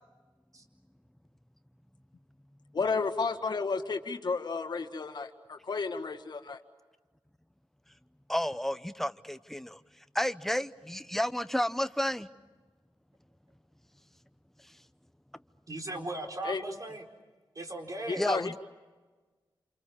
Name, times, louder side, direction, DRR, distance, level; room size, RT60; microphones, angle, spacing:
voice 1, 2.7-6.6 16.4-16.6 18.1-18.6, left 4 dB, 55° left, 1.8 m, -32 dB
voice 2, 8.3-9.8 10.1-12.3 18.2-18.6, equal, 5° left, 0.9 m, -31 dB
voice 3, 15.7-17.0 17.5-18.2, right 2 dB, 45° right, 4.4 m, -38 dB
28.5 x 28.0 x 7.1 m
wide cardioid pair, 100°, 9 cm